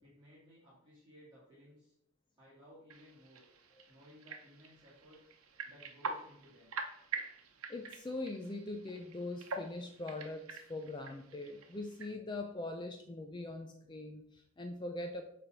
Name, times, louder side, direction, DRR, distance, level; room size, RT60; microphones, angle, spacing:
voice 1, 0.0-1.9 2.4-3.4 3.9-5.2 5.6-6.8, left 1 dB, 20° right, -10 dB, 2.0 m, -59 dB
sound 1, 2.9-12.2, right 4 dB, 85° right, 0.8 m, -46 dB
voice 2, 7.7-15.2, left 2 dB, 20° left, 4 dB, 0.4 m, -42 dB
7.1 x 3.3 x 5.1 m, 0.74 s
head